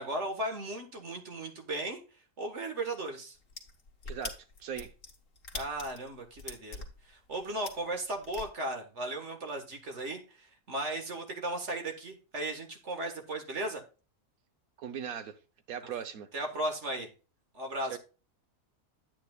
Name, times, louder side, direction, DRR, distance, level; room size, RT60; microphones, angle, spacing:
voice 1, 0.0-2.0 2.4-3.4 5.5-13.8 15.8-15.9 16.3-17.1 17.5-18.0, right 1 dB, 50° right, 1.8 m, -36 dB
sound 1, 3.4-8.4, left 4 dB, 55° left, 1.7 m, -42 dB
voice 2, 4.6-4.9 14.8-15.3 15.7-16.3 17.9-18.0, right 8 dB, 65° right, 1.3 m, -38 dB
9.9 x 9.0 x 2.3 m
omnidirectional pair, 1.7 m